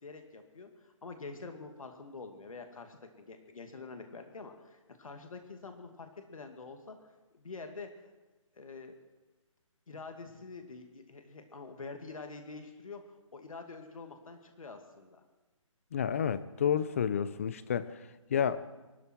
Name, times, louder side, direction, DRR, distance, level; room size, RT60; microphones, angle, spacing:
voice 1, 0.0-7.0 7.3-8.1 8.6-8.9 9.9-15.2, left 4 dB, 85° left, 5 dB, 2.3 m, -46 dB
voice 2, 15.9-17.9 18.3-18.6, left 8 dB, 25° left, 15 dB, 0.5 m, -30 dB
23.5 x 12.5 x 4.6 m, 1.2 s
hypercardioid pair, 165°, 17 cm